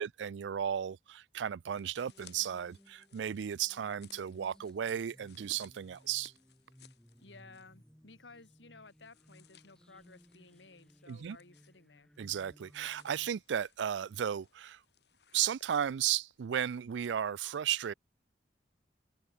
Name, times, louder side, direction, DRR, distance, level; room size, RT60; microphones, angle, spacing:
voice 1, 0.0-6.3 11.1-11.4 12.2-14.8 15.3-17.9, right 9 dB, 85° right, 0.4 m, -34 dB
sound 1, 1.7-7.8 8.1-8.2 8.8-17.1, left 9 dB, 65° left, 3.8 m, -64 dB
sound 2, 2.0-13.3, equal, 5° left, 2.0 m, -62 dB
voice 2, 7.2-12.1, left 3 dB, 90° left, 3.3 m, -56 dB
head